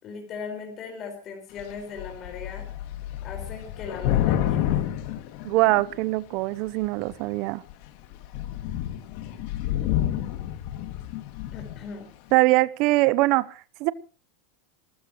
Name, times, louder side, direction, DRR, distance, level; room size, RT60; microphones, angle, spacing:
voice 1, 0.0-2.7 3.2-4.9 11.5-12.1, left 5 dB, 30° left, 4.9 m, -38 dB
Thunder / Rain, 1.6-1.7 2.0-6.1 6.8-7.3 7.7-7.8 8.1-11.9, left 12 dB, 50° left, 2.4 m, -29 dB
voice 2, 5.4-7.6 12.3-13.9, right 20 dB, 45° right, 0.9 m, -22 dB
27.5 x 14.5 x 3.1 m
supercardioid pair, 165°, 0 cm